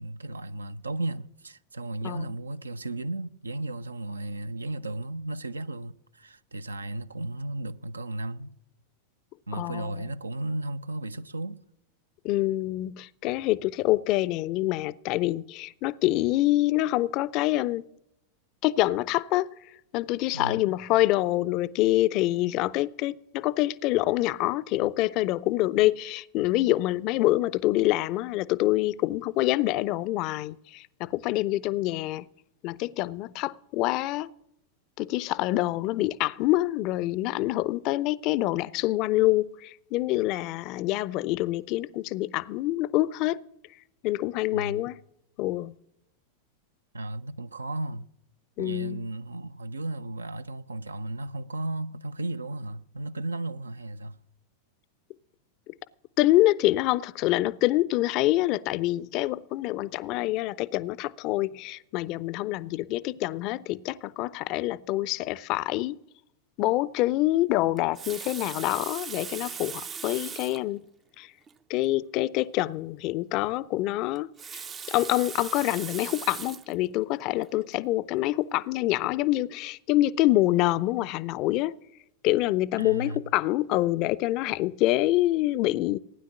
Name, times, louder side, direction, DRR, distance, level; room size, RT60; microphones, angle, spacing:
voice 1, 0.0-8.5 9.5-11.6 20.3-20.6 44.5-44.8 46.9-48.1 48.6-54.2 82.8-83.2, right 2 dB, 75° right, 0.5 m, -34 dB
voice 2, 9.5-10.1 12.2-17.8 18.6-19.6 19.9-32.3 32.6-34.3 35.0-43.4 44.0-45.0 45.4-45.7 48.6-49.0 55.7-55.8 56.2-66.0 66.6-70.9 71.2-71.3 71.7-81.8 82.2-86.0, left 17 dB, 40° left, 0.5 m, -26 dB
Water tap faucet, 67.8-70.7 71.5-71.6 71.8-71.9 74.2-76.8 77.4-77.6, right 7 dB, 20° right, 0.4 m, -39 dB
15.5 x 9.9 x 7.2 m
figure-of-eight pair, 90°, 0 cm